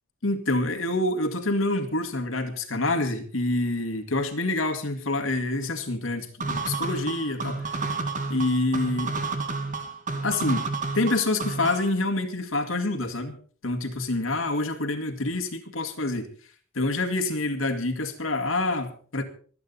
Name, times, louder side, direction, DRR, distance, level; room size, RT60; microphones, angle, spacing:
voice 1, 0.2-7.8 8.3-9.2 10.2-10.7 10.9-13.3 13.6-16.3 16.7-19.2, left 2 dB, 85° left, 6 dB, 2.0 m, -27 dB
sound 1, 6.4-12.0, right 3 dB, 40° right, 2.0 m, -30 dB
24.5 x 8.8 x 4.1 m, 0.44 s
head